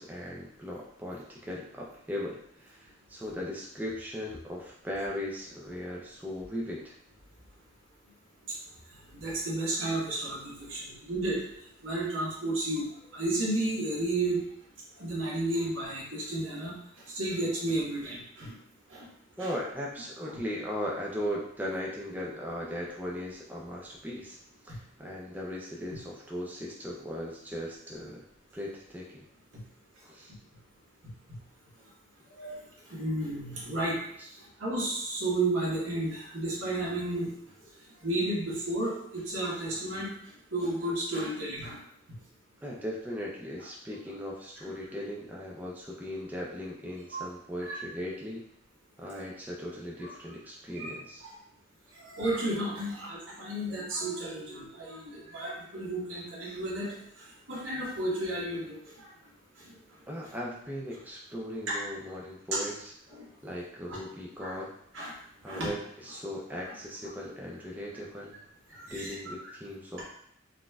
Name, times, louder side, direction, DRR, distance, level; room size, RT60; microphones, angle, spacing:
voice 1, 0.0-6.9 19.4-24.4 24.6-28.2 28.5-29.2 30.0-30.3 34.2-34.3 42.6-48.4 49.0-51.3 60.1-62.9 63.4-64.7 65.4-68.4 68.9-70.0, equal, 10° right, -3 dB, 0.3 m, -38 dB
voice 2, 9.1-11.4 11.8-12.8 13.1-14.4 15.0-16.7 17.1-18.5 18.9-19.1 19.4-19.5 32.3-32.5 32.9-34.0 34.6-37.3 38.0-40.1 40.5-41.8 47.1-47.2 47.6-47.8 50.8-50.9 52.0-56.9 57.5-59.1 61.7-61.8 62.5-62.6 63.1-63.3 63.9-64.0 64.4-64.6 64.9-65.1 65.5-65.7 66.6-66.7 68.7-69.1, right 1 dB, 85° right, -5 dB, 1.2 m, -32 dB
3.9 x 2.5 x 2.2 m, 0.70 s
head